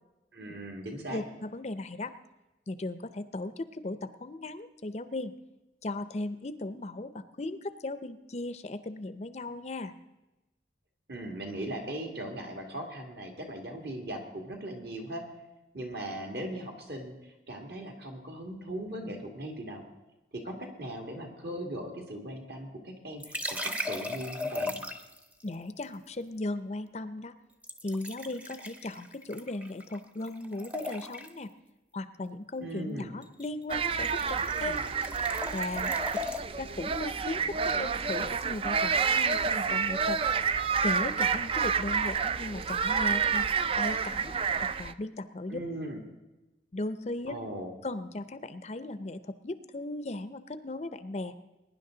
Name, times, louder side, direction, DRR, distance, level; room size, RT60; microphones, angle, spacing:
voice 1, 0.3-1.2 11.1-15.2 15.7-19.8 20.3-23.4 23.6-24.8 32.6-33.1 45.5-46.0 47.3-47.7, right 1 dB, 60° right, 2 dB, 2.3 m, -39 dB
voice 2, 1.1-2.2 2.7-5.3 5.8-9.9 25.4-27.4 27.8-31.5 31.9-34.8 35.5-36.2 36.6-40.2 40.8-43.5 43.8-44.3 44.8-45.6 46.7-47.4 47.8-51.3, left 2 dB, 35° left, 12 dB, 0.5 m, -37 dB
sound 1, 23.2-25.2 27.6-30.0 30.2-31.4 33.2-33.5 33.7-36.4, left 1 dB, 10° right, 0.7 m, -37 dB
sound 2, 33.7-44.9, right 6 dB, 30° right, 0.3 m, -29 dB
21.5 x 10.5 x 3.9 m, 1.0 s
head